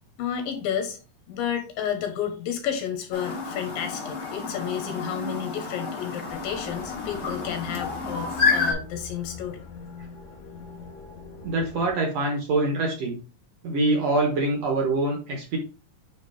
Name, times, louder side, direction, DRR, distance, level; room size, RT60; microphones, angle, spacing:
voice 1, 0.2-1.0 1.3-9.6, left 9 dB, 85° left, 5 dB, 3.0 m, -31 dB
Chirp tweet, 3.1-8.7, left 4 dB, 40° left, 1.8 m, -29 dB
sound 1, 6.3-11.9, left 4 dB, 60° left, 1.9 m, -43 dB
voice 2, 11.4-13.2 13.6-15.6, right 2 dB, 65° right, 2 dB, 1.8 m, -24 dB
8.9 x 3.4 x 3.5 m, 0.34 s
omnidirectional pair, 4.0 m